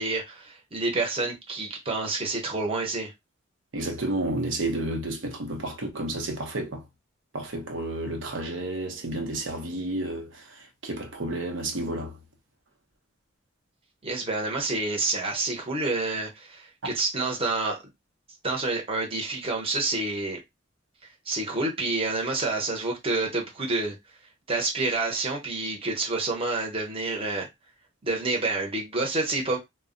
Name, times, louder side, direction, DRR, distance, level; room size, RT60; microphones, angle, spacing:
voice 1, 0.0-3.1 14.0-17.8 18.4-20.4 21.3-23.9 24.5-27.5 28.0-29.6, right 3 dB, 30° right, 0.9 m, -28 dB
voice 2, 3.7-6.8 7.3-10.4 10.8-12.1, right 1 dB, 70° right, 0.8 m, -31 dB
2.3 x 2.1 x 3.7 m
head